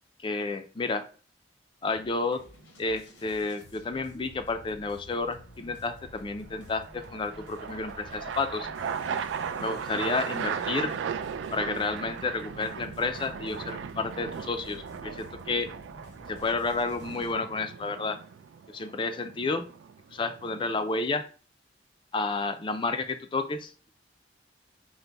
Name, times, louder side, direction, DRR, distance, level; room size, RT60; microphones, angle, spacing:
voice 1, 0.2-1.1 1.8-2.4 2.8-8.7 9.6-11.0 11.5-15.7 16.3-18.2 18.7-19.7 20.1-21.2 22.1-23.7, left 3 dB, 25° left, 8 dB, 0.3 m, -31 dB
sound 1, 1.9-17.3, left 2 dB, 85° left, 0.9 m, -51 dB
sound 2, 1.9-2.4 6.2-20.8, right 7 dB, 90° right, 0.3 m, -37 dB
3.9 x 2.1 x 4.5 m, 0.40 s
head